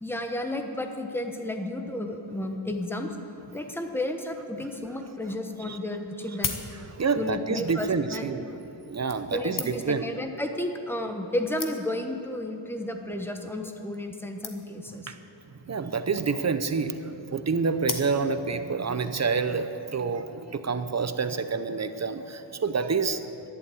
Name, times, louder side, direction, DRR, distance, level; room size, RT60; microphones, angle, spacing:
voice 1, 0.0-3.1 3.5-6.6 7.1-8.3 9.3-15.1, left 1 dB, 5° left, 5 dB, 1.1 m, -32 dB
sound 1, 6.1-7.2 8.1-8.3 9.1-10.1 10.9-11.0 11.2-11.3 11.6-12.1 12.8-13.1 13.4-13.5 13.7-13.8 13.9-14.1 14.4-14.9 15.9-16.4 17.8-18.5 19.1-19.2, left 5 dB, 45° left, 1.2 m, -37 dB
voice 2, 6.8-8.6 8.8-10.1 15.1-15.2 15.7-23.2, right 5 dB, 35° right, 10 dB, 0.7 m, -28 dB
12.5 x 11.0 x 8.4 m, 2.8 s
wide cardioid pair, 145°, 47 cm